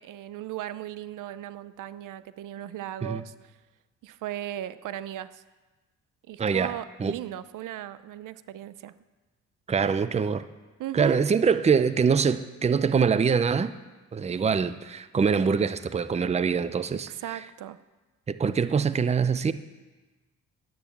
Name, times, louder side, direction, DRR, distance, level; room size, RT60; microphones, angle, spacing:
voice 1, 0.0-3.3 4.0-5.4 6.3-8.9 10.8-11.2 17.1-17.8, right 12 dB, 80° right, 15 dB, 0.6 m, -37 dB
voice 2, 6.4-7.2 9.7-10.5 10.9-13.7 14.1-17.1 18.3-19.5, right 6 dB, 20° right, 14 dB, 0.5 m, -24 dB
11.0 x 10.0 x 7.3 m, 1.2 s
cardioid pair, 100°, 31 cm